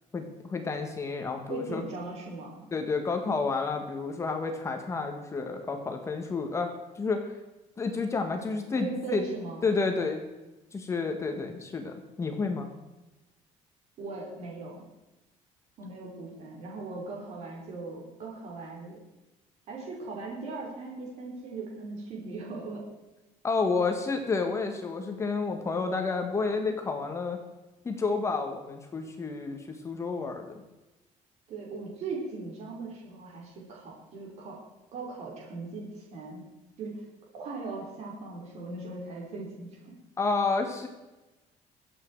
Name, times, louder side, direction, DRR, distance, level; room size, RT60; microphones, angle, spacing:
voice 1, 0.1-1.8 2.7-7.3 7.8-9.2 9.6-10.2 10.7-12.7 23.4-27.4 27.8-30.6 40.2-40.9, left 4 dB, 20° left, 4 dB, 1.5 m, -30 dB
voice 2, 1.5-2.7 8.8-9.6 14.0-14.8 15.8-19.0 19.7-22.9 31.5-34.6 34.9-36.4 36.8-37.0 37.3-40.0, right 3 dB, 55° right, -2 dB, 4.6 m, -39 dB
23.5 x 8.6 x 4.7 m, 1.0 s
cardioid pair, 160°, 13 cm